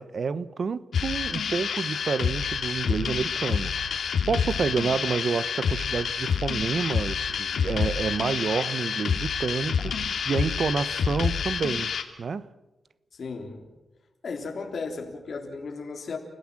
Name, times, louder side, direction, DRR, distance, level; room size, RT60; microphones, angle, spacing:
voice 1, 0.0-12.5, right 5 dB, 45° right, 0.8 m, -29 dB
sound 1, 0.9-12.0, left 6 dB, 75° left, 2.2 m, -28 dB
voice 2, 13.1-13.7 14.2-16.2, left 4 dB, 50° left, 3.6 m, -35 dB
30.0 x 17.0 x 7.6 m
wide cardioid pair, 175°, 0 cm